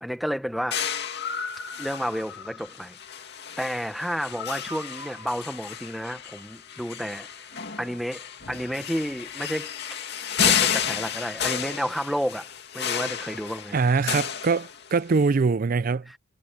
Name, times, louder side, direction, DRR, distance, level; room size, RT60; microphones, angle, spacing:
voice 1, 0.0-0.9 1.8-3.0 3.6-9.7 10.0-12.5 12.7-13.8 16.1-16.2, equal, ahead, 0.7 m, -31 dB
sound 1, 0.7-15.2, left 8 dB, 55° left, 2.4 m, -31 dB
voice 2, 13.7-16.1, right 4 dB, 45° right, 0.4 m, -23 dB
head